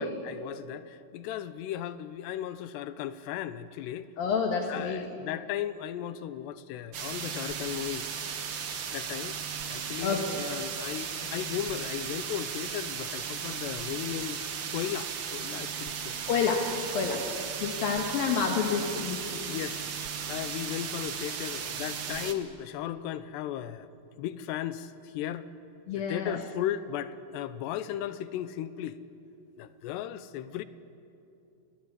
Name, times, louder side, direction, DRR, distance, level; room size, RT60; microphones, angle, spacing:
voice 1, 0.0-4.1 4.7-8.1 8.9-9.4 9.7-16.2 17.1-17.3 19.5-23.9 24.2-25.5 25.9-29.0 29.6-30.6, left 11 dB, 90° left, 14 dB, 3.0 m, -36 dB
voice 2, 4.2-5.1 10.0-10.4 16.3-17.3 17.6-19.4 25.9-26.4, left 5 dB, 65° left, 2 dB, 3.0 m, -29 dB
sound 1, 6.9-22.3, right 7 dB, 75° right, 1.2 m, -36 dB
27.5 x 20.5 x 8.3 m, 2.7 s
omnidirectional pair, 4.8 m